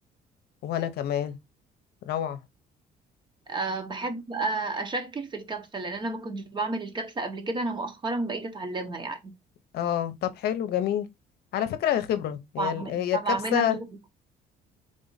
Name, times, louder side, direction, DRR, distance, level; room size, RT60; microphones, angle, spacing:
voice 1, 0.6-1.3 2.0-2.4 9.7-11.1 11.5-13.8, left 10 dB, 70° left, 0.7 m, -27 dB
voice 2, 3.5-9.3 12.6-13.9, right 3 dB, 25° right, 0.9 m, -31 dB
3.7 x 2.5 x 3.9 m
cardioid pair, 110°, 17 cm